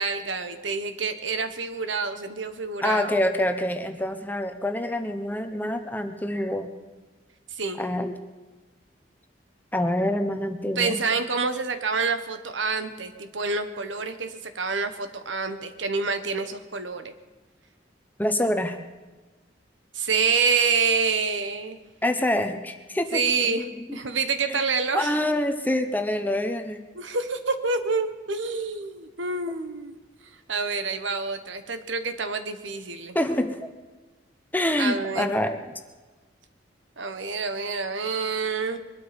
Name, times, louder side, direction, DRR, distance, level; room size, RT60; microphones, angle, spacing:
voice 1, 0.0-3.2 7.6-7.8 10.8-17.1 19.9-21.8 23.1-23.6 23.9-25.1 26.9-29.9 30.5-33.2 34.8-35.3 37.0-38.8, right 4 dB, 85° right, 9 dB, 1.4 m, -27 dB
voice 2, 2.8-6.7 7.8-8.1 9.7-11.0 18.2-18.8 22.0-24.0 24.5-24.6 24.9-26.8 33.1-33.7 34.5-35.7, left 1 dB, 10° left, 7 dB, 1.0 m, -26 dB
22.0 x 12.5 x 5.3 m, 1.3 s
head